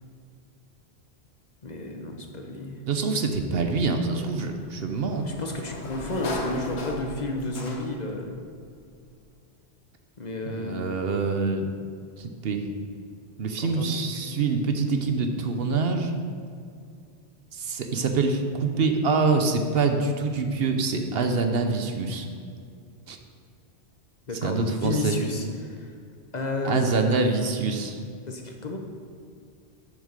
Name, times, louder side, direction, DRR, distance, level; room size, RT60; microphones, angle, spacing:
voice 1, 1.6-2.8 5.2-8.4 10.2-11.0 13.6-14.4 24.3-26.0 26.3-27.1 28.3-28.8, left 2 dB, 45° left, 2 dB, 1.0 m, -32 dB
voice 2, 2.9-5.3 10.5-11.7 12.2-12.7 13.4-16.1 17.5-22.3 23.1-23.2 24.4-25.1 26.6-28.0, right 4 dB, 65° right, 6 dB, 1.0 m, -25 dB
Sliding door, 4.2-8.2, left 2 dB, 80° left, 1.4 m, -36 dB
7.3 x 6.5 x 6.6 m, 2.3 s
omnidirectional pair, 1.1 m